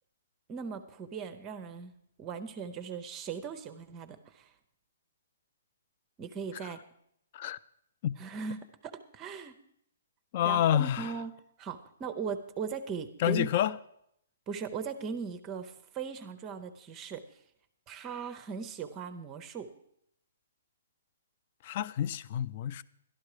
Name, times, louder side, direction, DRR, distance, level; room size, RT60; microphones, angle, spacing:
voice 1, 0.5-1.9 2.2-4.5 6.2-6.8 8.2-9.5 10.4-11.3 11.6-13.8 14.5-17.2 17.9-19.7, right 6 dB, 20° right, 0.6 m, -39 dB
voice 2, 10.3-11.1 13.2-13.7 21.6-22.8, left 11 dB, 35° left, 0.4 m, -28 dB
12.0 x 11.5 x 4.9 m
hypercardioid pair, 165°, 0 cm